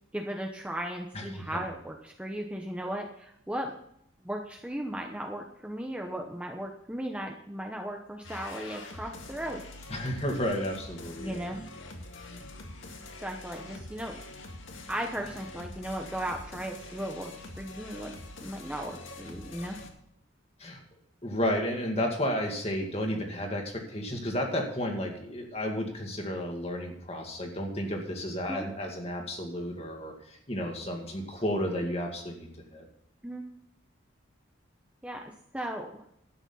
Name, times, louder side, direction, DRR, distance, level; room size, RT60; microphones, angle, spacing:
voice 1, 0.1-3.7 4.2-9.6 11.2-11.6 13.2-14.2 14.9-17.3 17.6-18.1 18.4-19.8 28.5-28.6 33.2-33.4 35.0-36.0, right 1 dB, 5° right, 1 dB, 0.9 m, -36 dB
voice 2, 1.1-1.6 9.9-11.5 20.6-20.8 21.2-32.9, equal, 30° left, 2 dB, 2.2 m, -32 dB
sound 1, 8.2-19.9, left 2 dB, 80° left, 2.0 m, -45 dB
12.0 x 9.0 x 5.6 m, 0.72 s
head